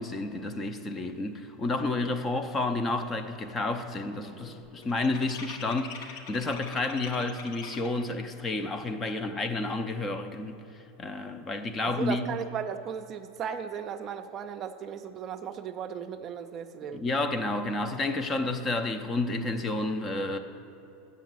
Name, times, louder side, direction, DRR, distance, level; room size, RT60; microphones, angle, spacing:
voice 1, 0.0-10.6 11.0-12.4 16.9-20.4, left 2 dB, 20° left, 0.6 m, -30 dB
sound 1, 3.5-8.1, left 5 dB, 70° left, 1.0 m, -44 dB
voice 2, 11.8-17.0, right 8 dB, 35° right, 0.4 m, -36 dB
7.2 x 7.0 x 7.5 m
supercardioid pair, 135°, 0 cm